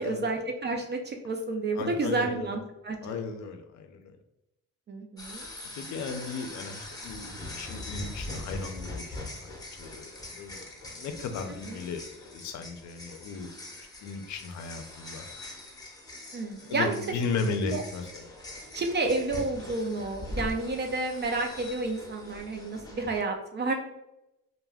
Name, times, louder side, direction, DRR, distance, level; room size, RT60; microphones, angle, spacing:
voice 1, 0.0-3.2 4.9-5.4 11.7-11.8 16.3-17.2 17.6-17.8 18.7-23.7, right 3 dB, 35° right, 3 dB, 0.4 m, -30 dB
voice 2, 1.8-2.5 3.0-4.1 5.8-9.2 9.8-10.6 11.0-12.0 12.3-13.5 14.0-15.3 16.7-18.2, left 4 dB, 70° left, 6 dB, 0.5 m, -35 dB
sound 1, 5.2-23.2, left 1 dB, 15° left, 0.6 m, -42 dB
2.2 x 2.2 x 3.4 m, 0.89 s
cardioid pair, 90°, 30 cm